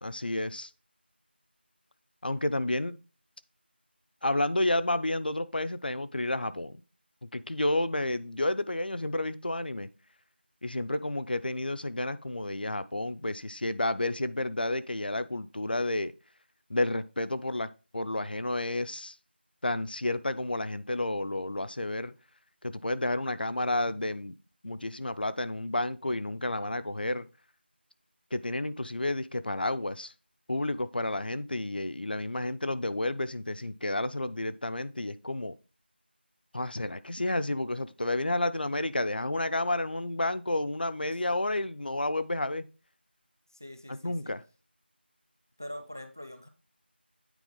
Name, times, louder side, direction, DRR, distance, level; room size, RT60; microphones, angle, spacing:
voice 1, 0.0-0.7 2.2-3.0 4.2-6.8 7.2-9.9 10.6-16.1 16.7-19.1 19.6-22.1 22.6-24.3 24.6-27.3 28.3-30.1 30.5-35.5 36.5-42.6 43.9-44.4, left 2 dB, 55° left, 0.5 m, -31 dB
voice 2, 43.5-44.3 45.6-46.5, left 1 dB, 15° right, 0.3 m, -43 dB
9.1 x 4.0 x 3.7 m
figure-of-eight pair, 175°, 6 cm